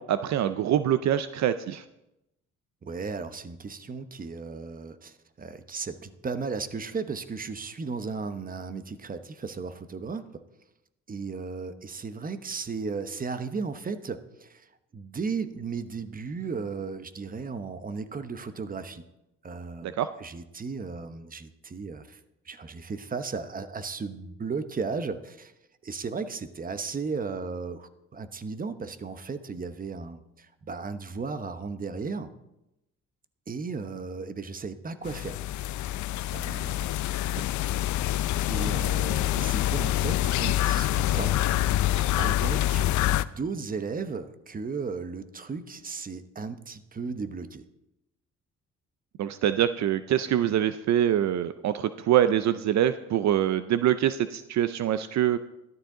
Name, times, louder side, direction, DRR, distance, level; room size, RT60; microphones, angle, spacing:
voice 1, 0.0-1.8 19.8-20.1 49.2-55.4, right 11 dB, 65° right, 12 dB, 0.6 m, -25 dB
voice 2, 2.8-10.4 11.1-14.7 14.9-19.0 19.4-22.2 22.5-25.5 25.8-32.3 33.5-35.4 36.3-36.9 38.5-41.4 41.8-41.9 42.2-47.6, right 4 dB, 30° right, 11 dB, 0.9 m, -35 dB
sound 1, 35.0-43.2, left 13 dB, 75° left, 0.5 m, -26 dB
13.0 x 12.0 x 3.8 m, 0.89 s
cardioid pair, 90°, 30 cm